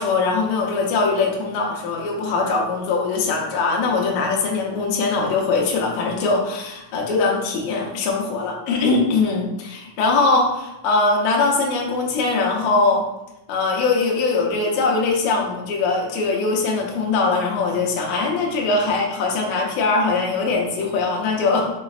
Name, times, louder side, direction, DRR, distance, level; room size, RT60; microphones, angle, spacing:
voice 1, 0.0-13.0 13.5-21.7, left 3 dB, 70° left, -1 dB, 1.8 m, -21 dB
5.8 x 3.1 x 2.4 m, 0.91 s
omnidirectional pair, 3.9 m